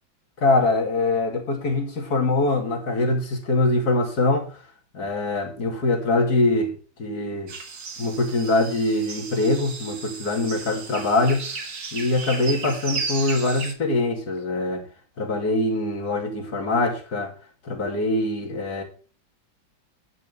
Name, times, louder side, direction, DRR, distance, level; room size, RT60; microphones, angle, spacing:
voice 1, 0.4-4.6 4.9-7.5 8.0-11.4 11.9-14.8 15.2-17.3 17.6-18.8, left 2 dB, 50° left, 2.9 m, -23 dB
sound 1, 7.5-13.7, right 4 dB, 50° right, 2.1 m, -34 dB
11.0 x 8.3 x 3.6 m
omnidirectional pair, 2.2 m